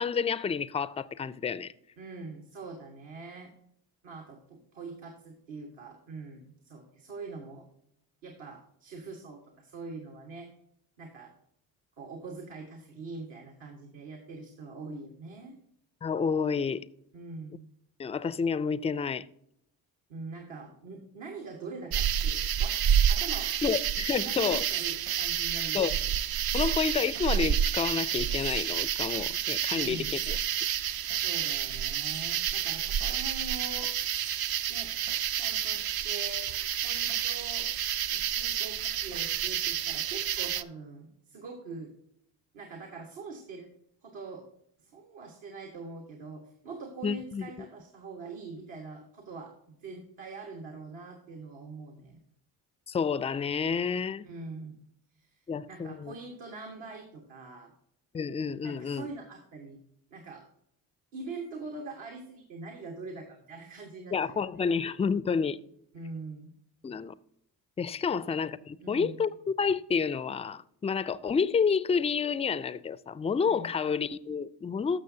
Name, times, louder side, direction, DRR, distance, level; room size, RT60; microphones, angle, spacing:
voice 1, 0.0-1.7 16.0-16.8 18.0-19.3 23.6-24.7 25.7-26.0 26.5-30.4 47.0-47.5 52.9-54.3 55.5-56.1 58.1-59.1 64.1-65.6 66.8-67.1 67.8-75.0, left 6 dB, 15° left, 0.3 m, -29 dB
voice 2, 2.0-3.5 4.0-7.7 8.2-10.5 11.0-11.3 12.0-15.6 17.1-17.7 20.1-22.8 23.1-23.5 24.1-26.1 29.7-30.2 31.2-34.2 34.7-34.9 35.4-36.5 36.8-37.7 38.1-41.9 42.5-43.7 44.0-44.5 44.8-52.2 54.2-54.8 55.1-55.4 55.7-57.7 58.6-59.8 60.1-60.4 61.1-64.7 65.9-66.5 68.1-68.3 68.8-69.2 73.4-73.7, right 3 dB, 70° right, 1.6 m, -43 dB
sound 1, 21.9-40.6, right 9 dB, 50° right, 0.5 m, -29 dB
Hammer, 23.2-23.4 25.1-25.3 27.1-27.5 29.1-29.4 31.1-31.4 33.0-33.3 35.1-35.3 37.1-37.4 39.1-39.4, right 7 dB, 90° right, 0.6 m, -52 dB
13.5 x 6.3 x 2.7 m
hypercardioid pair, 50°, 49 cm